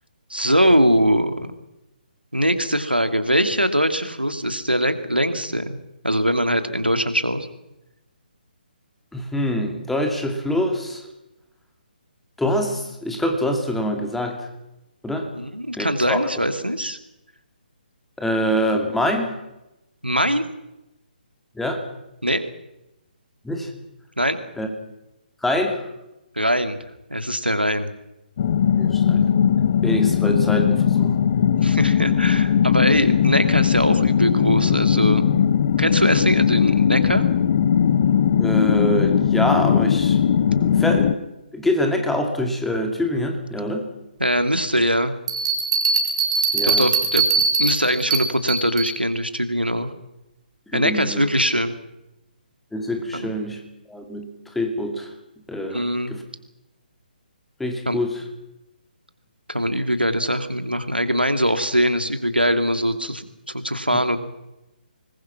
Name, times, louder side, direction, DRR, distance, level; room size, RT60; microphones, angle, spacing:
voice 1, 0.3-1.5 2.3-5.8 6.0-7.5 15.3-17.0 20.0-20.4 22.2-22.4 24.2-24.4 26.4-26.8 27.1-27.9 31.6-35.2 35.8-37.2 44.2-45.2 46.6-47.3 47.6-49.9 50.7-51.7 53.1-53.3 55.7-56.1 57.9-58.0 59.5-64.2, equal, 90° right, 9 dB, 2.5 m, -21 dB
voice 2, 9.1-11.0 12.4-14.4 15.0-15.3 15.8-16.3 18.2-19.4 21.6-21.8 23.4-23.7 24.6-24.7 25.4-25.8 28.8-29.2 29.8-31.1 38.4-40.2 40.5-41.2 41.5-43.8 46.5-46.9 50.7-51.2 52.7-53.6 53.9-54.3 54.5-55.1 55.5-56.2 57.6-58.2 63.9-64.0, equal, 5° left, 3 dB, 2.4 m, -25 dB
sound 1, 28.4-41.1, left 8 dB, 35° left, 1.1 m, -19 dB
Bell, 45.3-48.9, right 4 dB, 35° right, 4.0 m, -21 dB
26.0 x 21.0 x 6.0 m, 0.92 s
figure-of-eight pair, 140°, 5 cm